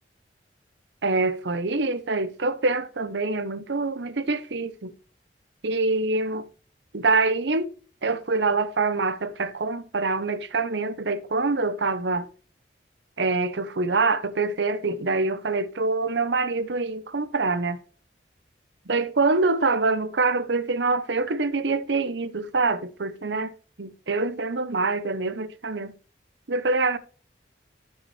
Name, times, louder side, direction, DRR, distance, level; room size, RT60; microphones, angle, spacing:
voice 1, 1.0-4.9 5.6-6.5 6.9-7.7 8.0-12.3 13.2-17.8 18.9-23.5 23.8-25.9 26.5-27.0, right 3 dB, 75° right, 0.8 m, -25 dB
13.0 x 5.5 x 3.3 m
head